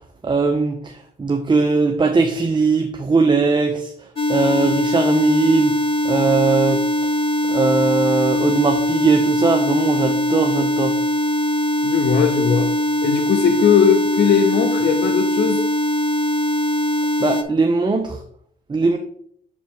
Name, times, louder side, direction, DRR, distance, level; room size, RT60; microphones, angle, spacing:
voice 1, 0.2-0.9 1.2-3.9 4.3-5.7 6.0-6.8 7.5-10.9 17.2-18.2 18.7-19.0, right 4 dB, 25° right, 4 dB, 0.6 m, -19 dB
sound 1, 4.2-17.4, left 1 dB, 30° left, 0.6 m, -21 dB
voice 2, 11.8-12.7 13.0-15.6, left 7 dB, 65° left, 6 dB, 0.8 m, -18 dB
6.8 x 5.1 x 3.4 m, 0.65 s
cardioid pair, 80°, 19 cm